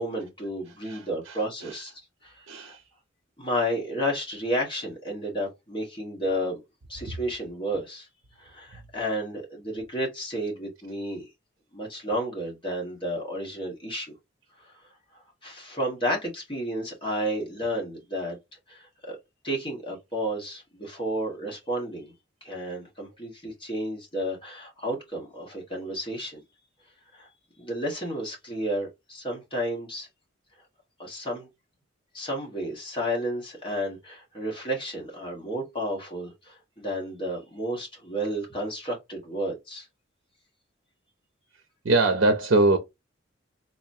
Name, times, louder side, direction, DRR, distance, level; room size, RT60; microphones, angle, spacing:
voice 1, 0.0-1.9 2.2-2.8 3.4-6.6 6.9-8.1 8.4-11.2 11.7-14.1 15.4-18.4 18.7-19.2 19.4-22.1 22.4-26.4 27.1-27.3 27.6-30.1 31.0-31.5 32.1-39.9, equal, 25° left, 1.5 m, -32 dB
voice 2, 0.8-1.8 2.5-2.8 41.8-42.8, right 2 dB, 65° right, 0.7 m, -23 dB
4.0 x 2.9 x 2.7 m
head